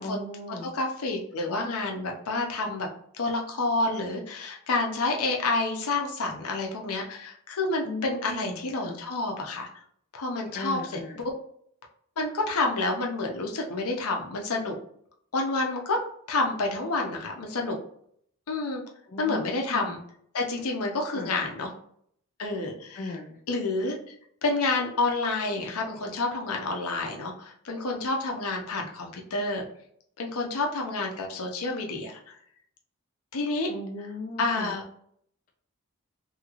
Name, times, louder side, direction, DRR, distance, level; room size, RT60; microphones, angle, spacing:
voice 1, 0.0-0.7 7.8-9.0 10.5-11.2 19.1-19.9 21.1-21.4 22.9-23.4 33.7-34.7, left 2 dB, 35° left, 2 dB, 0.4 m, -37 dB
voice 2, 0.7-2.9 3.1-9.7 10.1-10.8 11.2-11.3 12.2-14.8 15.3-16.0 16.3-17.8 18.5-18.8 19.2-20.0 20.3-21.7 22.4-23.1 23.5-24.2 24.4-29.7 30.2-32.3 33.3-33.7 34.4-34.8, left 3 dB, 85° left, 1 dB, 0.7 m, -29 dB
3.0 x 2.8 x 2.4 m, 0.66 s
head